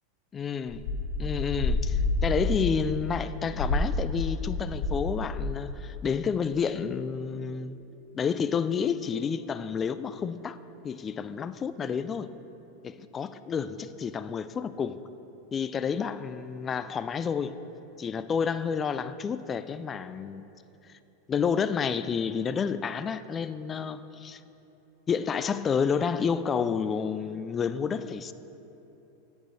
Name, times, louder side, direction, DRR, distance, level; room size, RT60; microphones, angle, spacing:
voice 1, 0.3-0.8 1.2-7.8 8.1-10.6 10.8-12.3 12.8-15.0 15.5-17.6 18.0-20.5 21.3-24.4 25.1-28.3, left 6 dB, 20° left, 0.3 m, -30 dB
sound 1, 0.7-5.0 5.3-5.7, left 2 dB, 55° left, 2.0 m, -29 dB
13.0 x 8.9 x 3.2 m
supercardioid pair, 140°, 0 cm